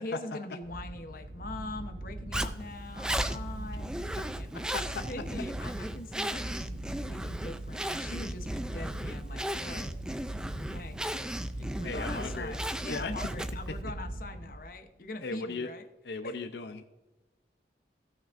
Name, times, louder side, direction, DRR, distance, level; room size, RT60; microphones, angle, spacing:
voice 1, 0.0-3.9 4.4-4.5 5.1-9.9 10.7-11.0 11.6-15.9 16.2-16.3, left 2 dB, 50° left, 7 dB, 0.9 m, -42 dB
sound 1, 0.6-14.9, right 1 dB, 90° right, 0.9 m, -40 dB
Zipper (clothing), 2.3-13.8, right 1 dB, 5° right, 0.3 m, -36 dB
voice 2, 4.2-5.1 11.8-12.6 12.9-13.1 15.2-15.7 16.0-16.9, left 3 dB, 70° left, 7 dB, 0.6 m, -37 dB
16.5 x 6.0 x 2.5 m, 1.1 s
head